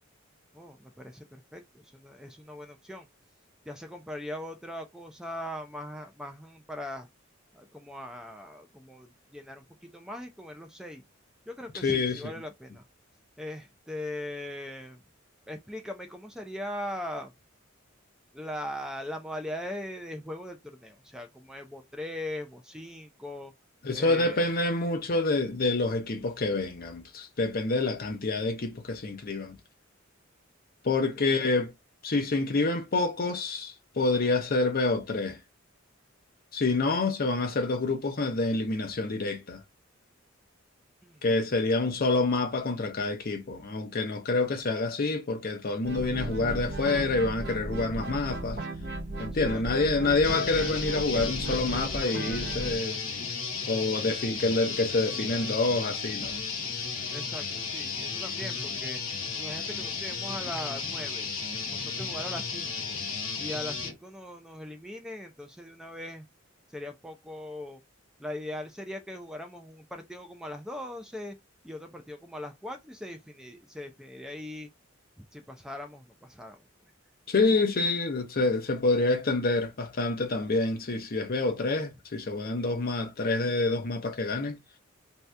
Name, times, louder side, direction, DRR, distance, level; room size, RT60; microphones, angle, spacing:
voice 1, 0.5-1.3 1.5-3.1 3.7-7.1 7.5-11.0 11.5-12.8 13.4-15.0 15.5-17.3 18.3-23.5 23.9-24.4 31.2-31.3 41.0-41.2 41.5-41.6 49.3-49.7 57.1-59.0 59.3-61.3 61.7-63.0 63.4-66.3 66.7-67.8 68.2-71.4 71.6-74.7 75.2-76.6, left 1 dB, 5° right, 0.4 m, -40 dB
voice 2, 11.7-12.2 23.8-29.6 30.8-31.7 32.0-35.4 36.5-39.6 41.2-48.6 49.2-53.0 53.7-56.4 77.3-84.6, left 3 dB, 45° left, 0.7 m, -27 dB
sound 1, 45.8-52.8, right 2 dB, 55° right, 0.7 m, -35 dB
sound 2, 50.2-63.9, left 5 dB, 75° left, 1.1 m, -34 dB
2.7 x 2.3 x 3.2 m
head